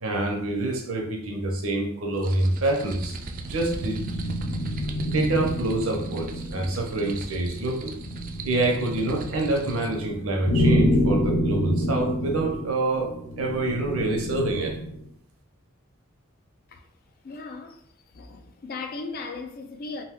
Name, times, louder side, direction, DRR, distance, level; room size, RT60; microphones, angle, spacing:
voice 1, 0.0-3.2 3.4-4.3 5.0-7.9 8.4-14.8, right 2 dB, 85° right, 0.7 m, -26 dB
sound 1, 2.1-10.0, right 3 dB, 40° right, 0.3 m, -40 dB
sound 2, 2.4-15.0, equal, 90° left, 0.6 m, -28 dB
voice 2, 17.2-17.8 18.1-20.0, left 3 dB, 45° left, 0.4 m, -37 dB
2.6 x 2.2 x 3.5 m
head